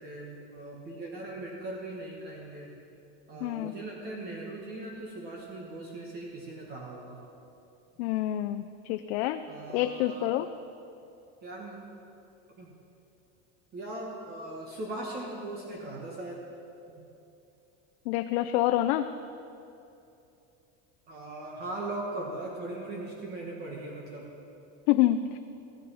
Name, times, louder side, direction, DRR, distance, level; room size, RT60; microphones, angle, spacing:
voice 1, 0.0-2.7 3.3-7.2 9.5-10.2 11.4-11.8 12.6-12.7 13.7-16.4 16.9-17.1 21.1-24.3, right 2 dB, 30° right, -2 dB, 1.4 m, -39 dB
voice 2, 3.4-3.7 8.0-9.4 9.7-10.5 18.1-19.1 24.9-25.4, left 13 dB, 80° left, 7 dB, 0.5 m, -27 dB
15.0 x 9.6 x 5.5 m, 2.7 s
cardioid pair, 175°, 33 cm